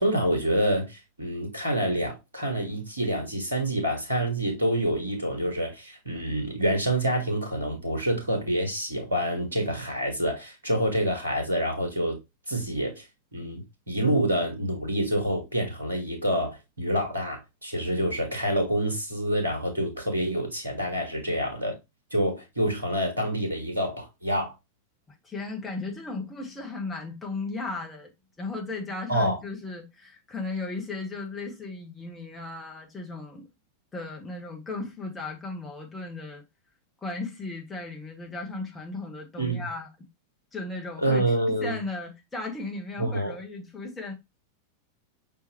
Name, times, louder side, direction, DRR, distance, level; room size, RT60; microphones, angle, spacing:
voice 1, 0.0-12.2 12.5-13.0 13.3-21.7 22.1-24.5 29.1-29.4 39.4-39.7 41.0-41.8 43.0-43.3, right 1 dB, 80° right, 1.6 m, -27 dB
voice 2, 25.2-28.1 28.4-33.5 33.9-36.4 37.0-39.9 40.5-41.2 41.6-44.1, left 3 dB, 15° left, 1.4 m, -36 dB
5.3 x 3.4 x 2.9 m
figure-of-eight pair, 90°, 0 cm